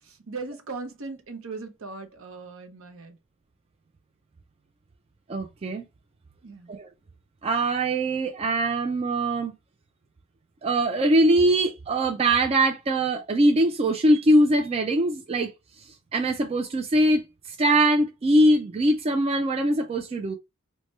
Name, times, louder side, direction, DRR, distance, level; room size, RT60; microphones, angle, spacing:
voice 1, 0.0-3.2 6.4-6.7, right 3 dB, 65° right, 0.7 m, -38 dB
voice 2, 5.3-5.8 6.7-6.9 7.4-9.5 10.6-15.5 16.1-20.3, right 1 dB, 30° right, 0.3 m, -22 dB
3.1 x 2.1 x 3.0 m
head